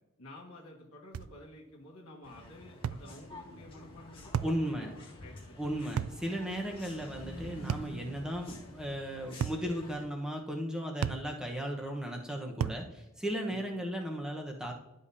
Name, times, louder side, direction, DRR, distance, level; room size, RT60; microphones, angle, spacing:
voice 1, 0.2-5.8 6.3-6.7 13.5-13.7, left 1 dB, 75° left, -4 dB, 1.4 m, -51 dB
sound 1, 1.1-1.4 2.8-3.1 4.3-4.6 6.0-6.2 7.7-8.0 9.4-9.7 11.0-11.3 12.6-12.9, right 7 dB, 85° right, 0.3 m, -33 dB
sound 2, 2.2-10.0, left 1 dB, 25° left, 1.6 m, -48 dB
voice 2, 4.4-4.9 5.6-14.7, equal, 5° right, 1 dB, 1.0 m, -36 dB
11.5 x 5.3 x 2.7 m, 0.97 s
head